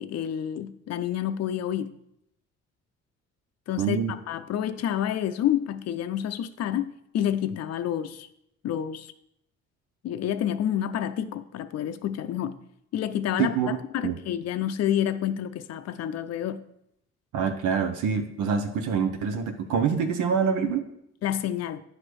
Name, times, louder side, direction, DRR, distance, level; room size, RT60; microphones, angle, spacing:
voice 1, 0.0-1.9 3.7-4.0 4.3-8.3 8.6-9.1 10.0-12.6 12.9-13.6 13.9-16.6 21.2-21.8, left 10 dB, 55° left, 0.5 m, -28 dB
voice 2, 3.8-4.1 13.4-13.8 14.0-14.2 17.3-20.9, right 6 dB, 85° right, 0.8 m, -25 dB
9.7 x 3.3 x 6.1 m
cardioid pair, 90°, 30 cm